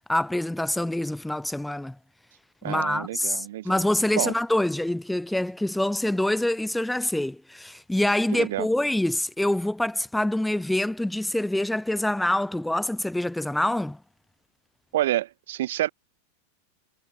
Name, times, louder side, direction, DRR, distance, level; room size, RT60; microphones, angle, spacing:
voice 1, 0.1-2.0 2.6-14.0, left 1 dB, 5° left, 0.3 m, -26 dB
voice 2, 2.6-3.8 4.2-4.3 8.3-8.7 14.9-15.9, right 14 dB, 55° right, 0.9 m, -28 dB
figure-of-eight pair, 90°, 0 cm